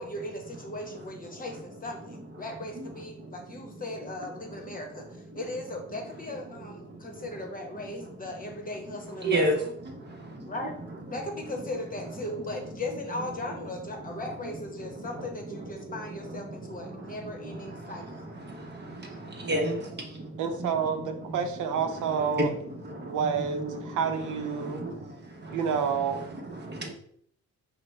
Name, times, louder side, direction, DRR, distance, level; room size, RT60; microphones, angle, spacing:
voice 1, 0.0-5.1 5.3-9.7 10.5-10.7 11.1-18.3, left 2 dB, 30° left, 2 dB, 0.9 m, -38 dB
voice 2, 4.4-4.8 6.8-7.4 8.0-8.1 9.2-9.6 9.8-10.5 12.2-12.7 14.0-14.2 14.8-21.4 21.8-26.9, right 1 dB, 35° right, 3 dB, 0.8 m, -35 dB
voice 3, 20.4-22.5 23.0-24.8 25.5-26.3, right 6 dB, 80° right, 6 dB, 0.6 m, -29 dB
4.9 x 2.1 x 3.2 m, 0.65 s
cardioid pair, 105°, 30 cm